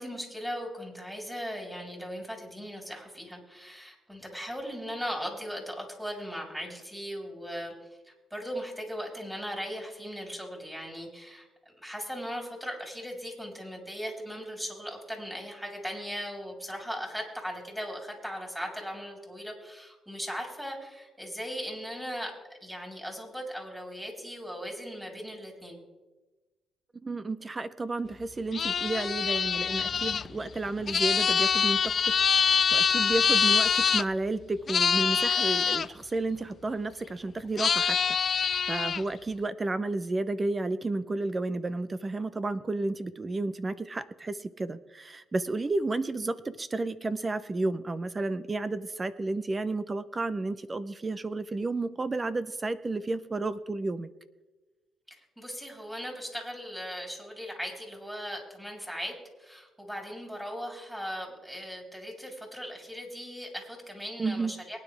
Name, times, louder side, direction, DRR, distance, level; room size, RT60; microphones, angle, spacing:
voice 1, 0.0-11.5 11.8-22.3 22.6-25.8 55.1-64.8, equal, 5° right, 0 dB, 3.9 m, -38 dB
voice 2, 27.0-38.0 38.7-54.1 64.2-64.5, right 2 dB, 25° right, 13 dB, 0.6 m, -32 dB
sound 1, 28.5-34.0 34.7-35.9 37.6-39.0, left 6 dB, 50° left, 0.3 m, -25 dB
23.0 x 9.9 x 3.4 m, 1.2 s
cardioid pair, 90°, 0 cm